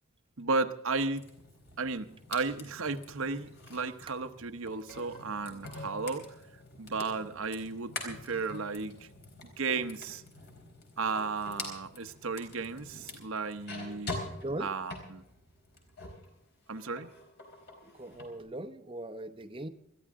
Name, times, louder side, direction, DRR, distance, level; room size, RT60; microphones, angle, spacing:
voice 1, 0.4-1.2 1.8-6.3 6.8-9.1 9.4-10.2 11.0-14.2 14.6-15.2 16.7-17.1, right 4 dB, 80° right, 8 dB, 0.9 m, -34 dB
sound 1, 1.1-16.3 16.6-18.3, left 2 dB, 50° left, 4.2 m, -45 dB
voice 2, 17.9-19.7, right 1 dB, 25° right, 5 dB, 0.8 m, -39 dB
21.0 x 14.0 x 3.7 m, 0.81 s
head